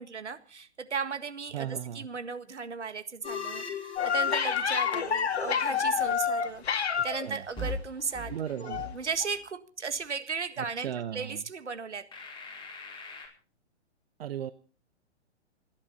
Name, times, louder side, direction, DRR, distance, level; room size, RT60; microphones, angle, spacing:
voice 1, 0.0-12.1, right 5 dB, 80° right, 10 dB, 1.9 m, -36 dB
voice 2, 1.5-2.1 7.2-7.4 8.3-8.9 10.8-11.4 14.2-14.5, right 10 dB, 55° right, 13 dB, 0.9 m, -35 dB
sound 1, 3.2-6.1 7.6-7.7 8.1-8.3 8.7-8.9 9.3-9.4 12.1-13.3, left 3 dB, 15° left, 4.8 m, -40 dB
sound 2, 4.0-7.3 8.6-8.9 9.2-9.3, left 7 dB, 65° left, 2.1 m, -28 dB
29.5 x 11.0 x 4.1 m, 0.39 s
figure-of-eight pair, 120°, 35 cm